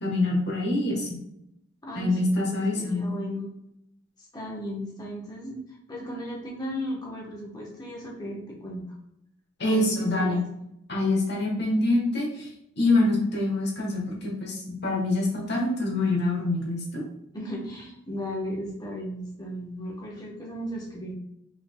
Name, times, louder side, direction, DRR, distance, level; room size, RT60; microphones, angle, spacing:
voice 1, 0.0-1.2 1.9-3.1 9.6-10.4 10.9-12.5 12.8-17.0, left 2 dB, 55° left, -1 dB, 1.2 m, -25 dB
voice 2, 1.8-3.5 4.3-5.6 5.9-8.8 9.6-10.7 17.3-21.1, equal, 20° left, -3 dB, 0.9 m, -36 dB
4.6 x 3.8 x 2.2 m, 0.79 s
head